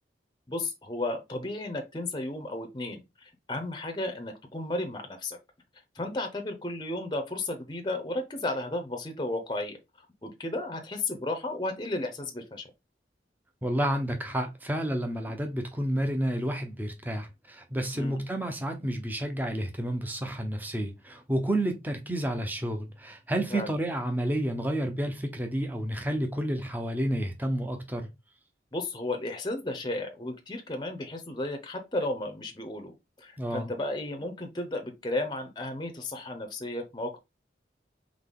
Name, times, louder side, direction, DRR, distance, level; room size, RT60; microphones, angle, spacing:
voice 1, 0.5-5.4 5.9-12.7 17.9-18.2 23.5-23.7 28.7-37.2, left 2 dB, 25° left, 0.7 m, -34 dB
voice 2, 13.6-28.1 33.4-33.7, right 1 dB, 10° right, 0.7 m, -30 dB
3.9 x 3.3 x 3.7 m
head